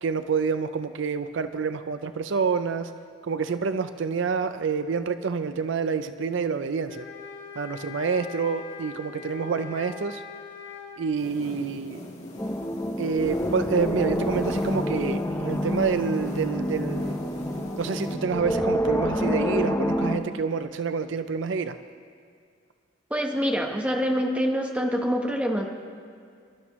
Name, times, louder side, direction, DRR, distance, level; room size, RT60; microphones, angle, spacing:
voice 1, 0.0-2.9 3.2-7.1 7.6-10.2 11.0-12.0 13.0-17.2 17.8-21.8, right 5 dB, 70° right, 11 dB, 0.5 m, -28 dB
sound 1, 6.9-11.0, left 6 dB, 60° left, 1.9 m, -41 dB
sound 2, 11.1-18.2, left 1 dB, 35° left, 2.7 m, -41 dB
sound 3, 12.4-20.2, equal, 15° left, 0.8 m, -27 dB
voice 2, 23.1-25.6, equal, 5° right, 1 dB, 1.1 m, -25 dB
24.5 x 12.0 x 3.1 m, 2.2 s
head